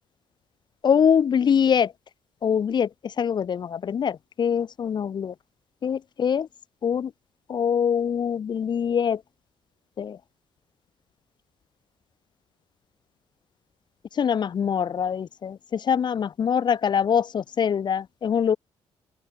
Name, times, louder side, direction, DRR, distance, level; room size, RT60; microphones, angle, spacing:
voice 1, 0.8-1.9 2.4-2.9 3.2-5.3 5.8-6.5 6.8-7.1 7.5-9.2 10.0-10.2 14.2-18.6, left 7 dB, 45° left, 3.6 m, -23 dB
open air
cardioid pair, 125°, 11 cm